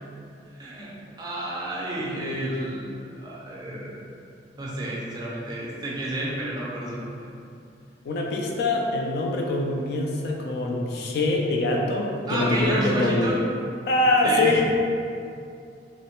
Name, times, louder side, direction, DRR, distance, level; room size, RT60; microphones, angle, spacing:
voice 1, 0.6-4.1 4.6-7.3 12.3-13.4 14.2-14.6, right 1 dB, 20° right, -5 dB, 0.5 m, -30 dB
voice 2, 2.0-2.5 8.1-13.4 13.9-14.6, left 2 dB, 60° left, 0 dB, 0.4 m, -24 dB
3.0 x 2.1 x 2.9 m, 2.5 s
head